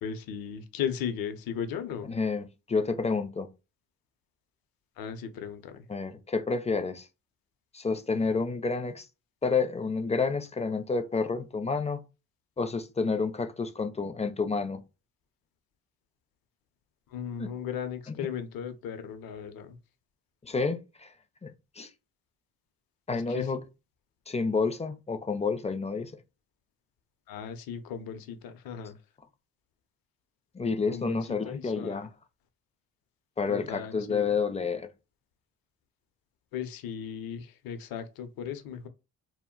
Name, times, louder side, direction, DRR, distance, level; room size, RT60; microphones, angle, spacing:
voice 1, 0.0-2.1 5.0-5.8 17.1-19.8 23.1-23.5 27.3-28.9 30.9-31.2 31.4-32.0 33.5-34.3 36.5-38.9, left 8 dB, 65° left, 0.6 m, -36 dB
voice 2, 2.0-3.5 5.9-7.1 7.7-9.1 9.4-12.0 12.6-14.8 17.4-17.5 18.2-18.3 20.4-21.1 21.4-21.9 23.1-23.6 24.3-26.1 30.5-32.1 33.4-34.9, left 4 dB, 20° left, 0.4 m, -29 dB
2.2 x 2.1 x 3.7 m
supercardioid pair, 60°, 38 cm